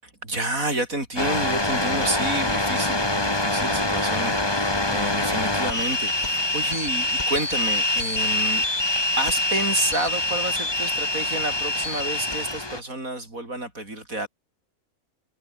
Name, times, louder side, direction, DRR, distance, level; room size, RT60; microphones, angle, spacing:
voice 1, 0.0-8.6 9.2-14.3, right 2 dB, 75° right, 8.2 m, -30 dB
sound 1, 1.2-12.8, left 2 dB, 20° left, 1.9 m, -25 dB
omnidirectional pair, 1.4 m